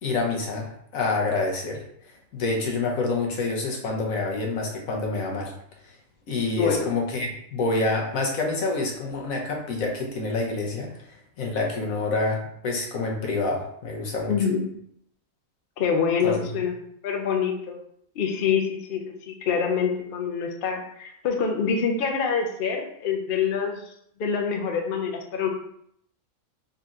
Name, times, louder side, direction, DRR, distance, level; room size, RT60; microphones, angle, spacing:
voice 1, 0.0-5.5 5.8-5.9 6.3-14.3 16.2-16.5, left 3 dB, 85° left, 0 dB, 1.3 m, -27 dB
voice 2, 6.6-6.9 14.3-14.6 15.8-16.7 17.0-17.8 18.2-23.8 24.2-25.5, left 6 dB, 55° left, 3 dB, 0.6 m, -25 dB
4.0 x 2.7 x 3.6 m, 0.70 s
omnidirectional pair, 1.4 m